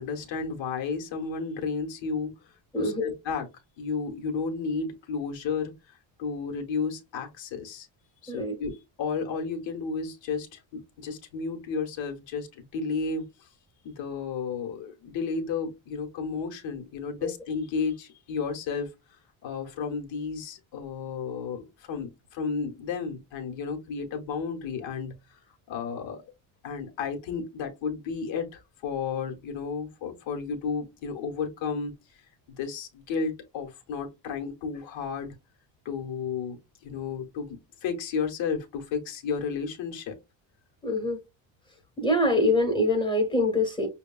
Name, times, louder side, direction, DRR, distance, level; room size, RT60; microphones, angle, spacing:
voice 1, 0.0-3.5 3.8-7.9 8.2-13.5 13.8-18.9 19.4-25.4 25.7-26.2 26.6-32.2 32.5-35.4 35.8-40.2, left 5 dB, 80° left, 1.2 m, -33 dB
voice 2, 2.7-3.1 8.3-8.6 17.2-17.3 40.8-41.2 42.0-43.9, left 1 dB, 10° left, 1.1 m, -24 dB
6.2 x 2.3 x 2.3 m
cardioid pair, 165°, 45 cm